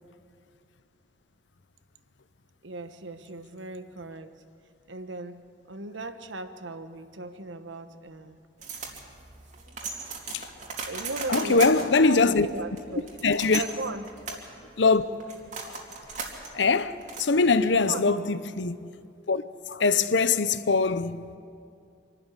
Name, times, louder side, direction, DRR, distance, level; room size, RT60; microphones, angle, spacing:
voice 1, 2.6-4.4 4.9-8.4 10.9-11.8 12.1-13.1 13.5-14.1 17.8-18.1, right 2 dB, 90° right, 1.2 m, -37 dB
sound 1, 8.6-17.8, right 4 dB, 40° right, 2.6 m, -38 dB
voice 2, 11.3-12.5 13.2-13.6 14.8-15.0 15.6-15.7 16.5-18.9 19.3-19.4 19.7-21.3, left 4 dB, 80° left, 0.8 m, -22 dB
26.0 x 12.5 x 9.9 m
head